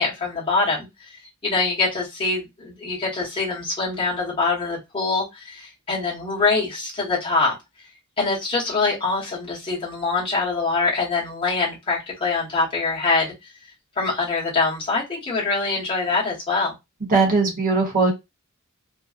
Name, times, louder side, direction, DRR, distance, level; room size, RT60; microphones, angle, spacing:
voice 1, 0.0-7.5 8.2-13.5 14.0-16.7, left 3 dB, 25° left, -6 dB, 1.0 m, -24 dB
voice 2, 17.1-18.1, right 3 dB, 40° right, 0 dB, 0.8 m, -19 dB
2.6 x 2.1 x 2.4 m, 0.22 s
head